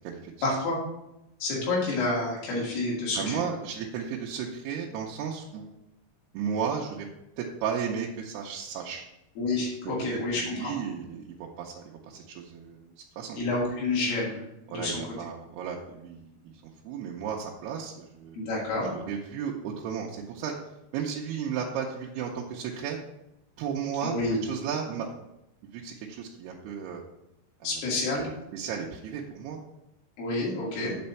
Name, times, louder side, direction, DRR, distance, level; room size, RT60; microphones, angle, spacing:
voice 1, 0.4-0.8 1.4-3.4 9.4-10.7 13.4-14.3 14.7-15.0 18.3-18.9 24.0-24.4 27.6-28.3 30.2-30.9, left 2 dB, 85° left, -5 dB, 4.5 m, -28 dB
voice 2, 3.2-5.7 6.3-7.1 7.4-9.0 10.4-13.4 14.7-18.4 18.9-20.5 20.9-23.0 23.6-25.2 25.6-27.0 28.5-29.6, right 7 dB, 90° right, -2 dB, 2.9 m, -34 dB
8.6 x 4.3 x 6.9 m, 0.87 s
omnidirectional pair, 4.6 m